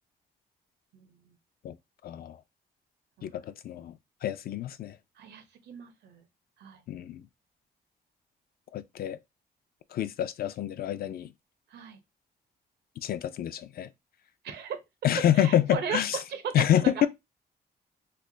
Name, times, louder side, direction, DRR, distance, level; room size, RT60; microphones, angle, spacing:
voice 1, 0.9-1.3 3.2-3.3 5.2-6.2 6.6-6.8 11.7-12.0 14.4-14.8 15.3-17.1, right 7 dB, 85° right, 0.8 m, -37 dB
voice 2, 2.0-2.4 3.2-3.9 4.2-5.0 6.9-7.2 8.7-9.2 9.9-11.3 13.0-13.9 15.0-16.2 16.5-17.1, left 11 dB, 65° left, 0.4 m, -27 dB
3.3 x 2.1 x 3.7 m
cardioid pair, 100°, 17 cm